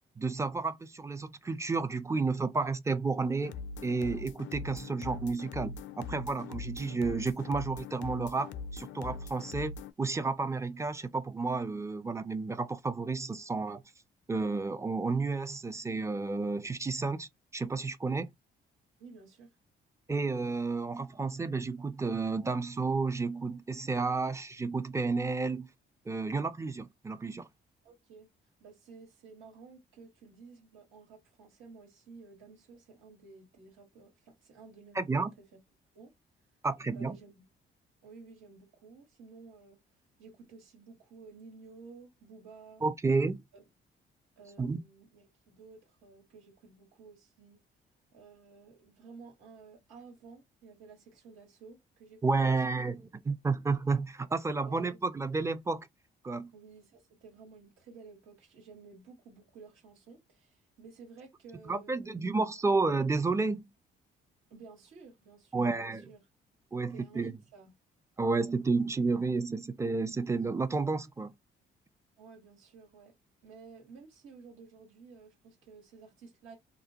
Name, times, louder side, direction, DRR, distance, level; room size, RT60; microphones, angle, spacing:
voice 1, 0.2-3.5 3.8-13.8 14.3-18.3 20.1-25.7 26.1-27.5 35.0-35.3 36.6-37.2 42.8-43.4 44.6-44.8 52.2-55.9 56.2-56.5 61.7-63.7 65.5-66.0 66.7-67.3 68.2-71.3, right 3 dB, 15° right, 0.4 m, -31 dB
sound 1, 3.4-9.9, left 4 dB, 70° left, 0.4 m, -42 dB
voice 2, 19.0-19.5 24.0-24.3 27.8-28.3 28.6-35.1 35.4-35.6 35.9-36.1 36.9-37.5 38.0-39.8 40.2-42.8 43.5-43.6 44.4-47.6 48.1-52.9 54.6-55.0 56.5-62.2 64.5-66.2 66.8-67.7 72.2-73.1 73.4-76.6, right 4 dB, 85° right, 1.5 m, -53 dB
2.5 x 2.1 x 2.8 m
cardioid pair, 90°, 20 cm